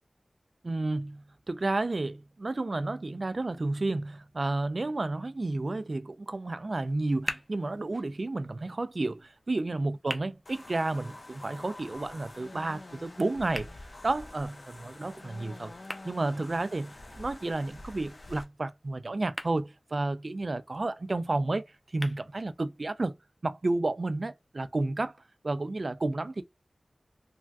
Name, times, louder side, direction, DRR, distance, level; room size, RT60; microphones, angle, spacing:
voice 1, 0.6-13.7 14.0-15.7 16.0-21.6 21.9-23.1 23.4-25.2 25.4-26.4, right 2 dB, 50° right, 0.3 m, -31 dB
sound 1, 6.8-22.8, equal, 10° left, 0.5 m, -46 dB
sound 2, 10.5-18.4, left 2 dB, 55° left, 0.5 m, -47 dB
3.3 x 2.2 x 2.5 m
wide cardioid pair, 65°, 0 cm